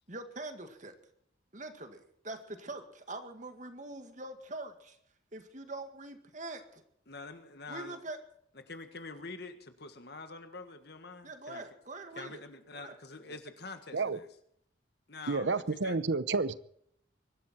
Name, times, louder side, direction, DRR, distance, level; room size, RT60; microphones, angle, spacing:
voice 1, 0.1-1.0 1.5-5.0 5.3-6.8 7.7-8.2 11.2-12.4 12.7-13.0 15.4-15.6, right 2 dB, 40° right, 7 dB, 2.0 m, -43 dB
voice 2, 7.1-8.0 8.7-11.6 12.2-14.3 15.1-16.0, left 3 dB, 55° left, 8 dB, 1.7 m, -46 dB
voice 3, 15.3-16.6, right 4 dB, 70° right, 16 dB, 0.8 m, -30 dB
23.5 x 12.5 x 4.4 m, 0.68 s
head